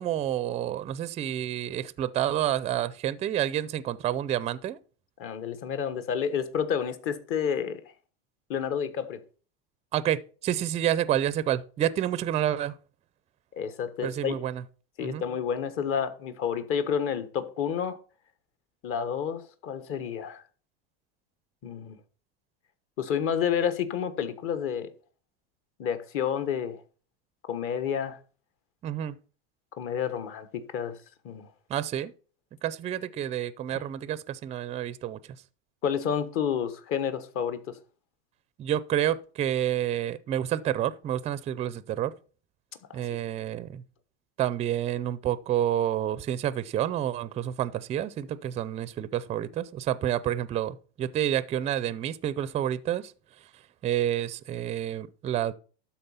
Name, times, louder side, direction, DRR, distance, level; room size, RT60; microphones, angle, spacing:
voice 1, 0.0-4.8 9.9-12.7 14.0-14.6 15.0-15.2 28.8-29.2 31.7-32.1 32.6-35.2 38.6-42.1 42.9-43.8 44.4-53.1 53.8-55.5, right 11 dB, 20° right, 0.4 m, -29 dB
voice 2, 5.2-7.8 8.5-9.2 13.5-14.3 15.0-18.0 18.8-20.4 21.6-22.0 23.0-24.9 25.8-26.8 27.5-28.2 29.8-31.0 31.2-31.5 33.7-33.8 35.8-37.8 42.9-43.0, left 8 dB, 45° left, 1.3 m, -30 dB
12.5 x 4.3 x 5.6 m
supercardioid pair, 135°, 31 cm